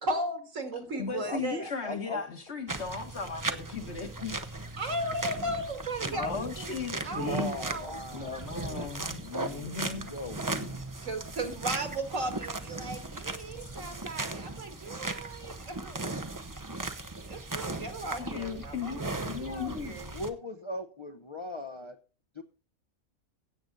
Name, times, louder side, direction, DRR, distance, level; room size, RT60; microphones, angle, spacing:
voice 1, 0.0-1.7 4.8-8.0 11.0-16.2 17.3-20.0, right 1 dB, 65° right, 5 dB, 2.5 m, -36 dB
voice 2, 0.9-4.7 6.1-7.5 8.1-10.1 10.6-10.8 18.2-20.0, left 5 dB, 50° left, 5 dB, 1.6 m, -37 dB
voice 3, 1.8-2.2 7.3-8.9 9.3-10.4 11.4-11.5 20.1-22.0 22.3-22.4, left 1 dB, 25° left, 5 dB, 0.7 m, -39 dB
sound 1, 2.7-20.3, right 2 dB, 20° right, 0.6 m, -37 dB
16.5 x 7.8 x 4.0 m, 0.35 s
omnidirectional pair, 1.5 m